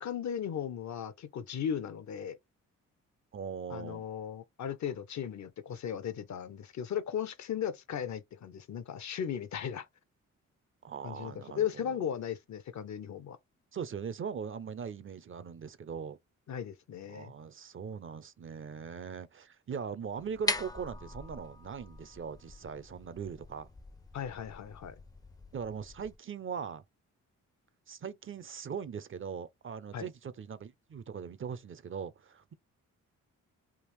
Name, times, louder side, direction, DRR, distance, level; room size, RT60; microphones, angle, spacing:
voice 1, 0.0-2.4 3.7-9.9 11.0-13.4 16.5-17.3 24.1-24.9 29.9-30.1, left 8 dB, 60° left, 0.7 m, -36 dB
voice 2, 3.3-4.0 10.8-12.1 13.7-16.2 17.1-23.7 25.5-26.8 27.9-32.5, right 6 dB, 40° right, 0.5 m, -40 dB
sound 1, 20.2-26.2, left 2 dB, 10° left, 0.5 m, -41 dB
3.5 x 2.4 x 3.1 m
cardioid pair, 65°, 33 cm